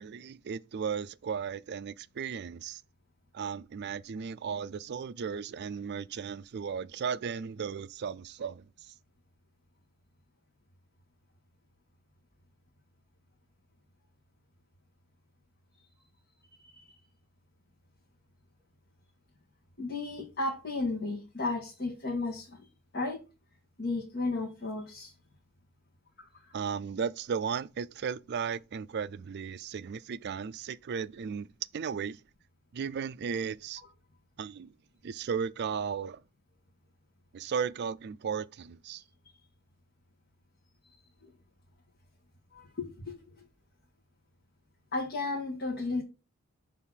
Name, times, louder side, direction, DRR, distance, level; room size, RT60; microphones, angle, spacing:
voice 1, 0.0-2.8 3.3-8.9 26.5-31.5 31.7-32.2 32.7-33.8 34.4-34.7 35.0-36.2 37.3-39.0, right 6 dB, 50° right, 0.4 m, -35 dB
voice 2, 19.8-22.7 22.9-23.2 23.8-25.1 26.3-26.5 41.2-41.3 42.5-43.2 44.9-46.0, left 3 dB, 50° left, 1.8 m, -34 dB
6.3 x 3.6 x 5.7 m
head